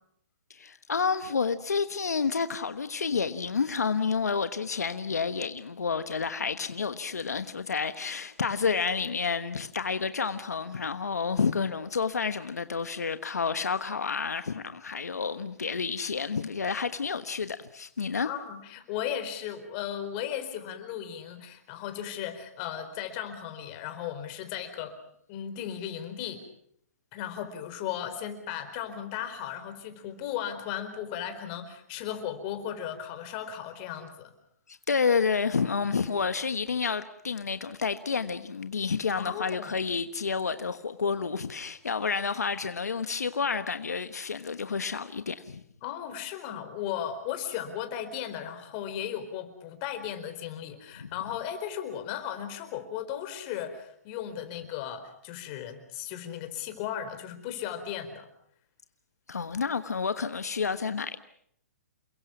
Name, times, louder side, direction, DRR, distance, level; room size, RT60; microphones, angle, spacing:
voice 1, 0.5-18.3 34.7-45.6 51.0-51.1 59.3-61.2, left 5 dB, 90° left, 1.2 m, -30 dB
voice 2, 18.2-24.9 25.3-26.4 27.1-34.3 39.2-39.7 45.8-58.3, left 10 dB, 35° left, 4.3 m, -36 dB
29.0 x 22.5 x 6.0 m
hypercardioid pair, 135°, 9 cm